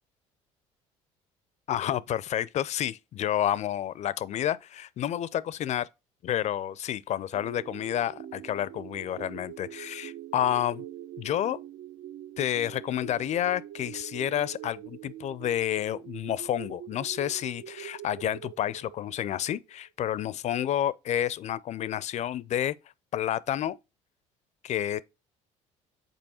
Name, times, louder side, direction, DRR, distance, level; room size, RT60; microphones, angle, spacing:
voice 1, 1.7-5.9 6.2-10.8 11.2-11.6 12.4-22.7 23.1-23.8 24.6-25.0, left 11 dB, 45° left, 0.4 m, -30 dB
sound 1, 7.3-19.7, right 11 dB, 60° right, 0.4 m, -44 dB
5.4 x 4.3 x 4.2 m
hypercardioid pair, 60°, 17 cm